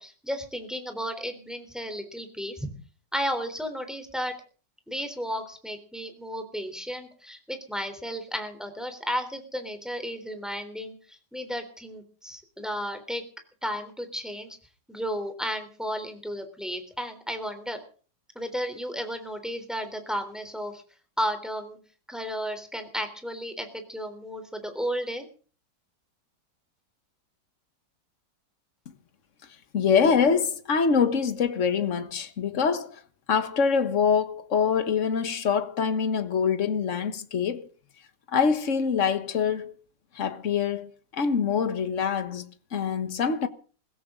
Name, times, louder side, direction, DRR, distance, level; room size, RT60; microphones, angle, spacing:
voice 1, 0.0-2.7 3.1-4.3 4.9-13.2 13.6-14.6 14.9-17.8 18.4-20.8 21.2-21.8 22.1-25.3, equal, ahead, 3.5 m, -33 dB
voice 2, 29.7-32.9 33.3-37.7 38.3-39.7 40.2-40.9 41.1-42.5 42.7-43.5, left 6 dB, 45° left, 1.6 m, -24 dB
22.5 x 16.5 x 3.8 m
omnidirectional pair, 2.1 m